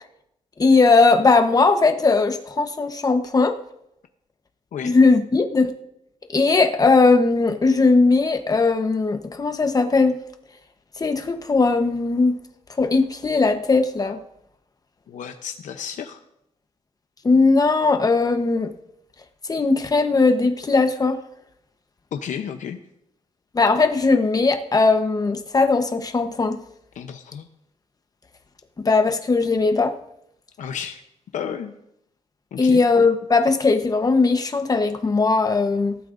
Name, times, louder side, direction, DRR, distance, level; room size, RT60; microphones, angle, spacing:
voice 1, 0.6-3.6 4.8-5.7 6.3-10.2 11.0-12.3 12.8-14.2 17.2-18.7 19.5-21.2 23.5-26.6 28.8-29.9 32.6-36.0, left 3 dB, 30° left, 6 dB, 1.0 m, -18 dB
voice 2, 15.1-16.2 22.1-22.8 27.0-27.5 30.6-31.0 31.3-31.7 32.5-32.8, left 8 dB, 85° left, 6 dB, 0.8 m, -32 dB
18.0 x 12.5 x 2.6 m, 0.79 s
wide cardioid pair, 125°, 13 cm